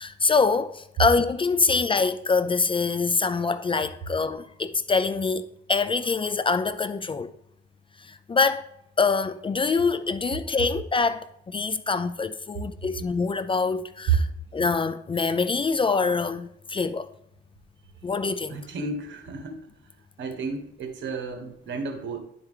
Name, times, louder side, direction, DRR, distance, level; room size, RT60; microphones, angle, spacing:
voice 1, 0.0-7.3 8.1-8.7 9.0-14.3 14.5-17.1 18.0-18.6, left 4 dB, 25° left, 0.4 m, -25 dB
voice 2, 18.5-19.7 20.2-22.2, right 6 dB, 70° right, 1.4 m, -30 dB
10.0 x 4.5 x 3.7 m
cardioid pair, 90°, 20 cm